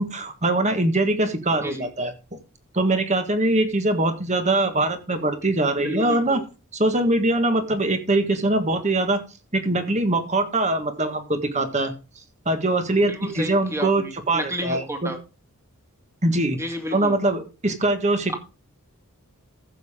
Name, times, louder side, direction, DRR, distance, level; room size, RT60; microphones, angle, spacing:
voice 1, 0.0-2.1 2.7-6.4 6.7-9.2 9.5-11.9 12.4-15.1 16.2-16.6 16.9-18.4, right 2 dB, 30° right, 8 dB, 1.6 m, -22 dB
voice 2, 5.8-6.4 13.0-15.2 16.5-17.2, equal, 10° right, 5 dB, 2.1 m, -31 dB
14.5 x 7.1 x 3.6 m, 0.31 s
head